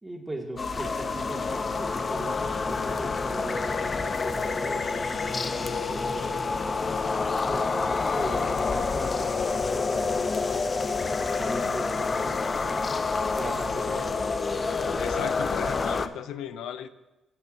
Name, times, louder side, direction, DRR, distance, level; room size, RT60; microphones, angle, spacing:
voice 1, 0.0-3.9 4.2-6.4 7.4-10.7 11.1-12.9 13.4-14.3, right 1 dB, 15° right, 1 dB, 2.0 m, -39 dB
sound 1, 0.5-16.1, left 4 dB, 65° left, 1.5 m, -45 dB
sound 2, 0.6-16.1, left 4 dB, 35° left, 0.6 m, -28 dB
voice 2, 15.0-16.9, left 9 dB, 85° left, 11 dB, 0.5 m, -36 dB
16.5 x 9.1 x 2.6 m, 1.1 s
cardioid pair, 90°, 0 cm